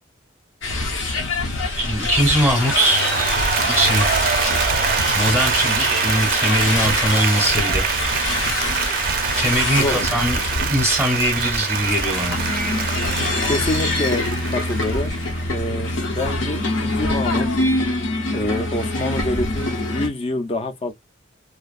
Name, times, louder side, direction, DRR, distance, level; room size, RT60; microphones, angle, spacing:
sound 1, 0.6-20.1, left 2 dB, 80° left, 0.7 m, -24 dB
voice 1, 1.8-3.2 3.6-4.2 5.1-7.8 9.3-10.4 10.7-12.5, right 1 dB, ahead, 0.7 m, -21 dB
Applause, 2.4-15.6, right 7 dB, 50° right, 0.4 m, -24 dB
voice 2, 9.7-10.1 13.4-14.2 14.5-15.2 15.5-17.5 18.3-20.9, left 2 dB, 30° left, 0.4 m, -26 dB
2.5 x 2.2 x 2.3 m
head